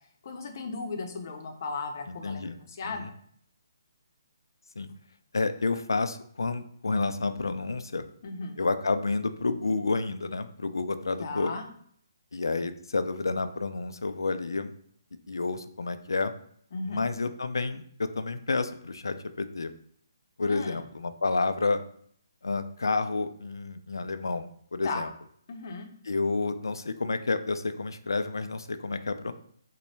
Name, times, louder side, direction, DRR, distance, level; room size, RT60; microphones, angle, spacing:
voice 1, 0.2-3.1 8.2-8.6 11.2-11.7 16.7-17.0 20.5-20.8 24.8-25.0 25.5-25.9, left 3 dB, 50° left, 4 dB, 0.7 m, -36 dB
voice 2, 2.1-2.6 2.8-3.1 4.8-4.9 5.3-8.0 8.6-11.5 12.3-14.7 15.3-16.3 16.9-19.7 20.4-21.8 22.4-25.1 26.1-29.3, left 3 dB, 85° left, 10 dB, 0.4 m, -30 dB
3.9 x 2.2 x 3.2 m, 0.62 s
hypercardioid pair, 150°, 2 cm